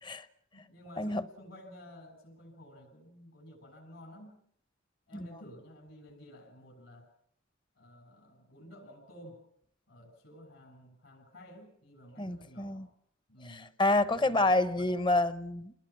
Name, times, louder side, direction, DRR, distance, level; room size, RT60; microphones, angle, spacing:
voice 1, 0.5-4.4 5.1-7.1 7.7-9.4 9.9-12.9 13.3-13.7 14.1-15.0, equal, 70° left, 7.6 m, -52 dB
voice 2, 12.2-12.9 13.5-15.7, left 2 dB, 25° left, 0.9 m, -28 dB
28.5 x 20.5 x 6.1 m
head